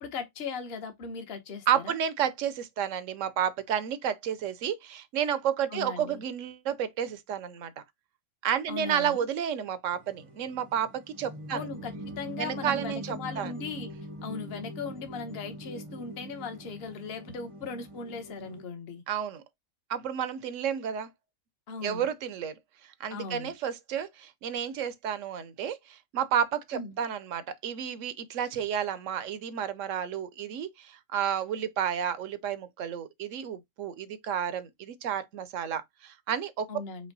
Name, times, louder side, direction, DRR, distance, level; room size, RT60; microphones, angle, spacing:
voice 1, 0.0-1.9 5.7-6.2 8.7-9.2 11.5-13.9 14.2-19.0 21.7-22.1 23.1-23.5 26.7-27.0 36.7-37.1, left 5 dB, 45° left, 1.1 m, -38 dB
voice 2, 1.7-7.8 8.4-11.7 12.4-13.5 19.1-19.4 19.9-21.1 21.8-22.5 23.0-36.7, right 9 dB, 65° right, 0.9 m, -31 dB
sound 1, 9.9-18.6, equal, 30° right, 0.6 m, -43 dB
5.2 x 2.2 x 3.9 m
omnidirectional pair, 1.6 m